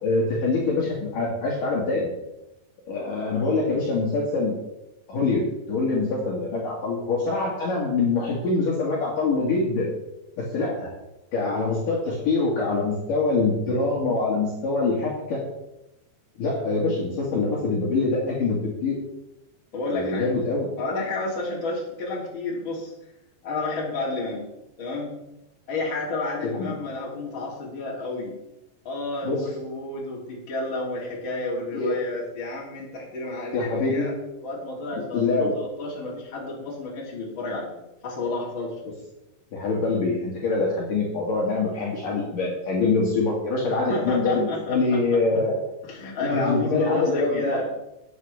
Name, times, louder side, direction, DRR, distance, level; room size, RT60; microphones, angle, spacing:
voice 1, 0.0-2.1 2.9-4.5 5.1-9.9 10.5-10.9 11.3-15.4 16.4-19.0 19.9-20.7 26.4-26.7 29.2-29.4 31.7-32.0 33.5-34.1 35.1-35.5 39.5-45.6 46.3-47.6, left 3 dB, 55° left, -5 dB, 3.2 m, -24 dB
voice 2, 19.7-20.3 20.8-22.9 23.4-24.4 24.8-25.1 25.7-28.3 28.8-34.1 34.4-37.7 38.0-38.7 43.7-45.2 45.9-47.6, left 2 dB, 30° left, -4 dB, 3.3 m, -31 dB
13.5 x 9.3 x 3.5 m, 0.92 s
omnidirectional pair, 5.0 m